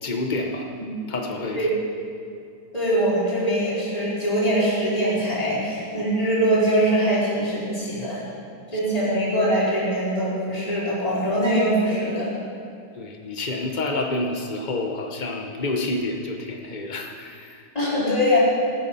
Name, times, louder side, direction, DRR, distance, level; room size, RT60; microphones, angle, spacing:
voice 1, 0.0-0.7 1.1-1.7 8.7-8.8 13.0-17.6, left 2 dB, 65° left, 2 dB, 0.4 m, -28 dB
voice 2, 2.7-8.2 8.7-12.3 17.7-18.4, equal, 15° left, -9 dB, 4.8 m, -22 dB
19.5 x 9.4 x 5.6 m, 2.4 s
omnidirectional pair, 2.3 m